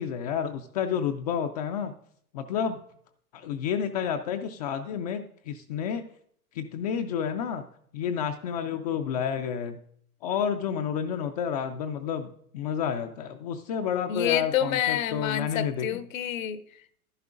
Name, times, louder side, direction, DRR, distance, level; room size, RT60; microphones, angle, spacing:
voice 1, 0.0-1.9 2.3-2.8 3.3-6.1 6.5-7.6 7.9-9.8 10.2-16.0, left 7 dB, 30° left, 0.4 m, -30 dB
voice 2, 14.1-17.0, left 10 dB, 60° left, 0.8 m, -28 dB
11.5 x 11.0 x 2.5 m
figure-of-eight pair, 105°, 45 cm